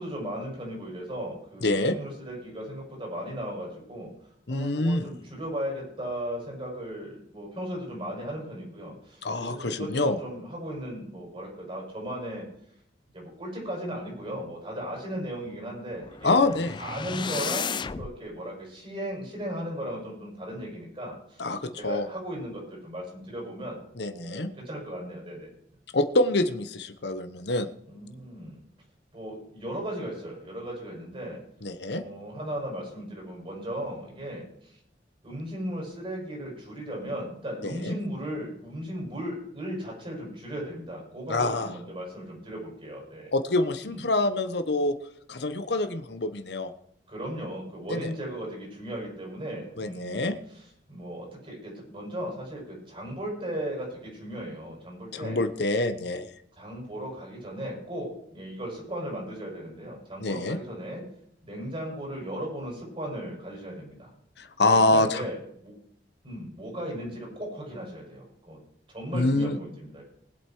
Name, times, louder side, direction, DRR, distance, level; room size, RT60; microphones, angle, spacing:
voice 1, 0.0-4.1 4.5-12.5 13.1-16.4 16.8-25.5 27.9-28.6 29.1-31.4 31.9-34.8 35.2-43.3 43.8-44.0 47.1-55.4 56.6-61.0 61.4-64.1 64.7-65.7 66.2-68.6 68.9-70.0, equal, 30° right, -3 dB, 7.0 m, -36 dB
voice 2, 1.6-2.0 4.5-5.1 9.2-10.2 16.2-16.8 21.4-22.1 24.0-24.5 25.9-27.7 31.6-32.0 37.6-38.0 41.3-41.7 43.3-45.0 45.3-46.7 47.9-48.1 49.8-50.4 55.1-56.3 60.2-60.6 64.4-65.2 69.1-69.6, left 2 dB, 65° left, 10 dB, 1.0 m, -26 dB
sound 1, 16.0-18.2, left 6 dB, 25° left, 0.4 m, -33 dB
20.0 x 8.0 x 4.6 m, 0.72 s
head